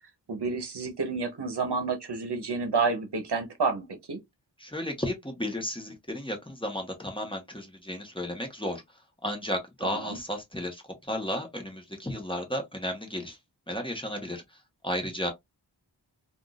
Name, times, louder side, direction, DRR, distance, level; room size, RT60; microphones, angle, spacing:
voice 1, 0.3-4.2 9.8-10.2, right 4 dB, 65° right, 0.9 m, -30 dB
voice 2, 4.6-8.8 9.2-13.4 13.7-14.4 14.8-15.3, left 1 dB, 10° left, 1.0 m, -33 dB
3.6 x 2.5 x 2.3 m
wide cardioid pair, 70°, 44 cm